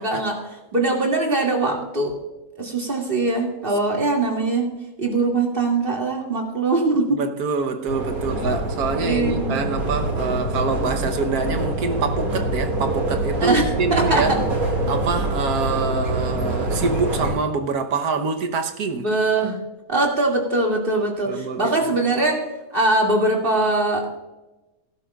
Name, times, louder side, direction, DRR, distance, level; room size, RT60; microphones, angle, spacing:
voice 1, 0.0-2.1 2.6-4.7 5.0-7.2 9.0-9.6 13.4-14.4 19.0-19.6 19.9-24.1, right 2 dB, 35° right, 2.5 m, -22 dB
voice 2, 7.1-14.4 14.9-19.1 21.2-21.9, right 4 dB, 85° right, 1.5 m, -25 dB
sound 1, 7.9-17.3, right 1 dB, 70° right, 3.0 m, -25 dB
17.5 x 11.5 x 2.4 m
omnidirectional pair, 1.6 m